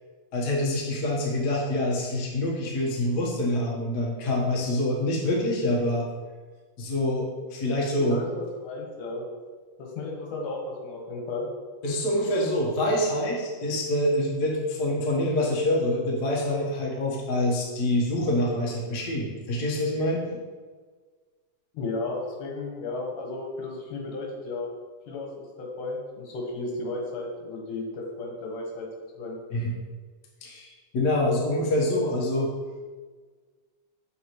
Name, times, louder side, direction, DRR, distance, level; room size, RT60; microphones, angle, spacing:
voice 1, 0.3-6.1 6.8-8.2 11.8-20.4 29.5-29.7 30.4-32.5, left 1 dB, 60° left, -4 dB, 1.0 m, -26 dB
voice 2, 8.0-9.2 9.8-11.5 21.7-24.7 25.1-28.9 29.2-29.4, left 2 dB, 80° left, 0 dB, 2.6 m, -34 dB
8.1 x 4.2 x 3.0 m, 1.5 s
omnidirectional pair, 3.7 m